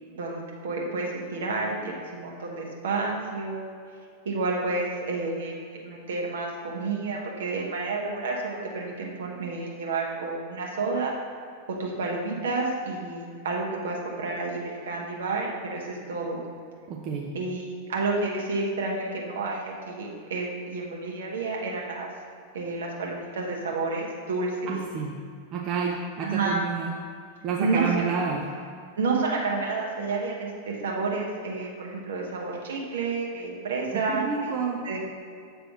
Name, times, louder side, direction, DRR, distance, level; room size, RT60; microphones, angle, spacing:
voice 1, 0.1-3.7 4.2-11.1 11.7-16.4 17.3-22.1 22.5-24.7 26.2-26.6 27.6-27.8 29.0-34.5 34.8-35.0, right 3 dB, 65° right, -2 dB, 1.4 m, -30 dB
voice 2, 16.9-17.4 24.7-25.2 25.5-26.9 27.4-28.5 33.9-34.8, right 5 dB, 35° right, -1 dB, 0.6 m, -29 dB
7.5 x 3.4 x 6.0 m, 2.3 s
figure-of-eight pair, 90°, 0 cm